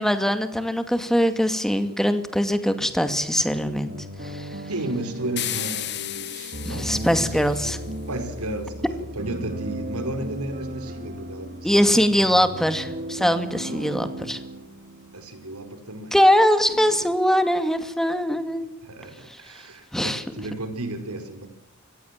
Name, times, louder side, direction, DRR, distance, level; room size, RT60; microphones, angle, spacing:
voice 1, 0.0-3.9 4.2-4.5 6.6-7.8 11.6-14.4 16.1-18.8 19.9-20.2, equal, ahead, 9 dB, 2.3 m, -22 dB
sound 1, 3.9-15.6, equal, 45° right, 2.9 m, -36 dB
voice 2, 4.7-7.4 8.1-11.7 13.6-14.1 15.1-16.2 16.7-17.1 18.8-21.5, right 2 dB, 85° right, 9 dB, 4.9 m, -34 dB
sound 2, 5.4-7.8, left 12 dB, 50° left, 1.8 m, -33 dB
25.0 x 18.0 x 7.5 m, 0.81 s
head